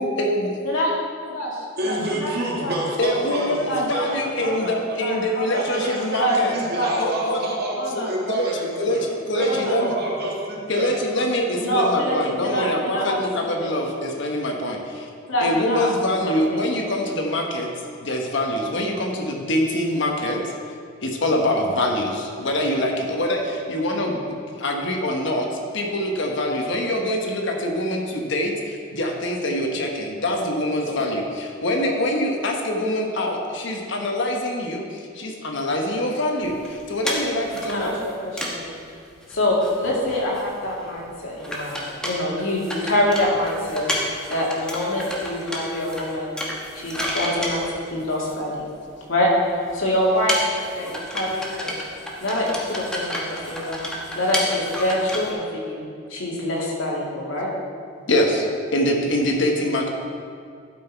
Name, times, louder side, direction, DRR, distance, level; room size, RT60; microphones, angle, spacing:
voice 1, 0.0-0.5 3.0-6.5 7.0-7.4 8.3-8.5 8.8-9.9 10.7-15.1 15.4-17.7 18.0-20.5 21.0-38.0 58.1-59.9, left 1 dB, 65° left, 2 dB, 1.1 m, -24 dB
voice 2, 1.8-5.0 5.5-9.0 9.3-11.2, right 1 dB, 55° right, -4 dB, 2.0 m, -28 dB
voice 3, 3.7-4.1 4.4-5.7 6.2-6.4 6.7-6.9 7.8-8.1 9.5-9.8 11.5-13.7 15.3-15.9 16.2-16.6 30.8-30.9 37.7-38.7 39.3-43.8 44.3-46.4 46.7-47.6 47.9-48.6 49.1-49.3 49.7-50.4 50.8-51.8 52.2-53.8 54.1-55.8 56.1-57.5, left 1 dB, 80° left, -4 dB, 2.2 m, -25 dB
sound 1, 36.4-38.7 38.9-39.0 39.2-39.4 39.6-40.7 41.0-41.1 41.4-48.6 49.3-49.4 49.7-55.3, equal, 5° left, 1.1 m, -31 dB
12.0 x 5.8 x 4.5 m, 2.3 s
head